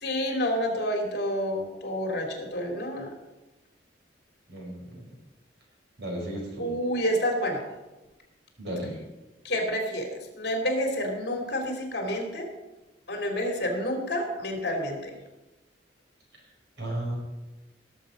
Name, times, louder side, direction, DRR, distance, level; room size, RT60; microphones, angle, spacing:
voice 1, 0.0-3.1 6.6-7.6 9.4-12.4 13.1-15.1, equal, 60° left, 2 dB, 2.8 m, -29 dB
voice 2, 4.5-5.1 6.0-6.7 8.6-9.0 16.8-17.2, right 1 dB, 70° right, -2 dB, 5.0 m, -34 dB
17.5 x 7.4 x 5.2 m, 1.1 s
head